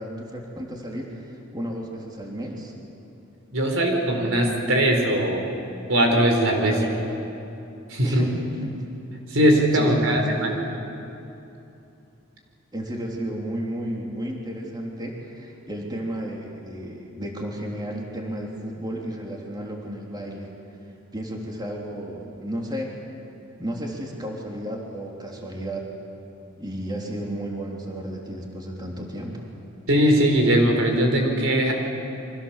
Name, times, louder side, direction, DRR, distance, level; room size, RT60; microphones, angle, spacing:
voice 1, 0.0-2.7 6.7-7.1 8.0-8.8 9.7-10.6 12.7-20.5 21.1-23.0 23.6-25.9 26.6-29.4, right 1 dB, 20° right, -1 dB, 3.2 m, -33 dB
voice 2, 3.5-5.4 5.9-6.7 7.9-8.3 9.3-10.5 29.9-31.7, equal, 75° right, 2 dB, 4.6 m, -20 dB
29.5 x 24.5 x 7.4 m, 2.8 s
head